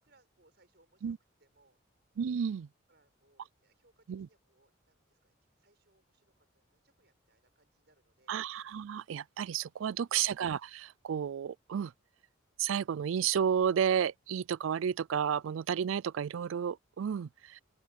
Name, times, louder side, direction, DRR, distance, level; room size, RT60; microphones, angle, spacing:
voice 1, 0.0-1.8 2.9-8.4, right 2 dB, 55° right, 7.3 m, -71 dB
voice 2, 2.2-2.7 4.1-4.3 8.3-11.9 12.6-17.6, right 8 dB, 80° right, 0.4 m, -32 dB
open air
head